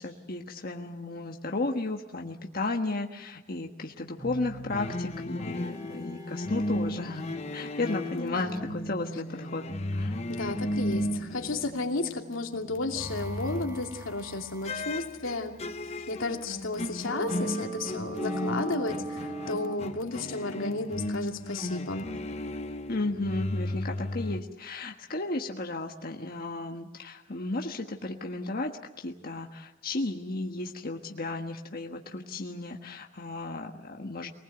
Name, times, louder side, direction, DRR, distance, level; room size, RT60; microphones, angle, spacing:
voice 1, 0.0-9.6 9.9-10.2 22.9-34.3, left 2 dB, 50° left, 2 dB, 1.4 m, -34 dB
sound 1, 4.2-19.8, right 2 dB, 20° right, 2.6 m, -42 dB
sound 2, 4.7-12.2 12.6-14.1 14.6-24.4, left 1 dB, 35° left, 1.0 m, -35 dB
voice 2, 8.2-8.6 10.3-15.6 16.1-22.1, left 2 dB, 90° left, 2 dB, 2.6 m, -33 dB
24.5 x 19.5 x 7.9 m, 1.0 s
head